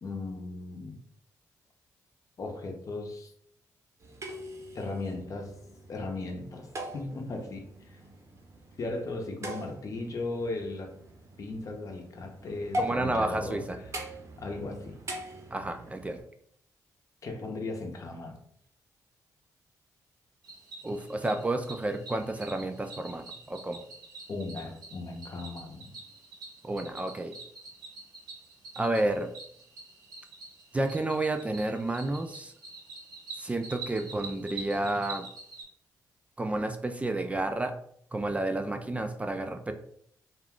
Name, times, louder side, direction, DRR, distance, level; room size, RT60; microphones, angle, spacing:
voice 1, 0.0-1.0 2.4-3.3 4.7-5.5 5.9-8.0 8.8-11.0 11.4-13.6 14.4-15.0 17.2-18.4 24.3-25.9, left 2 dB, 55° left, 3 dB, 0.7 m, -37 dB
sound 1, 4.0-16.2, equal, 45° right, 0.7 m, -42 dB
voice 2, 12.8-13.8 15.5-16.2 20.8-23.8 26.6-27.4 28.8-29.3 30.7-32.5 33.4-35.3 36.4-37.7 38.1-39.7, right 2 dB, 20° right, 6 dB, 0.3 m, -31 dB
Cricket, 20.4-35.6, right 4 dB, 75° right, 1.1 m, -46 dB
2.4 x 2.3 x 3.5 m, 0.66 s
cardioid pair, 75°, 7 cm